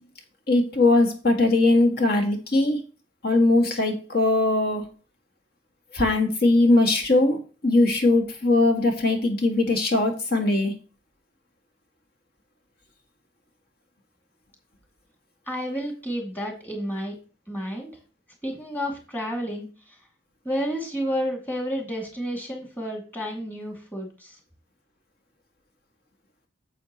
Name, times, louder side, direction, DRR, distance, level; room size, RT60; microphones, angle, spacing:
voice 1, 0.5-2.8 3.2-4.8 5.9-10.7, left 2 dB, 55° left, 4 dB, 2.0 m, -20 dB
voice 2, 15.5-17.2 17.5-18.0 18.4-19.7 20.4-24.3, equal, 10° left, 1 dB, 2.4 m, -30 dB
9.3 x 7.4 x 3.0 m, 0.34 s
head